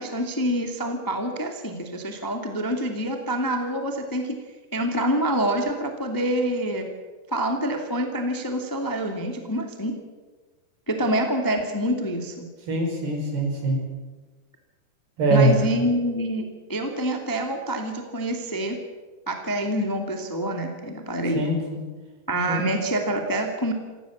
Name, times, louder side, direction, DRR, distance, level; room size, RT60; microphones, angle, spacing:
voice 1, 0.0-4.4 4.7-6.9 7.3-9.9 10.9-12.5 15.3-18.8 19.3-21.5 22.3-23.7, right 1 dB, 10° left, 3 dB, 1.5 m, -26 dB
voice 2, 12.7-13.8 15.2-15.6 21.3-21.8 22.5-22.6, right 1 dB, 75° right, 2 dB, 7.2 m, -22 dB
28.0 x 16.0 x 7.4 m, 1.3 s
omnidirectional pair, 4.6 m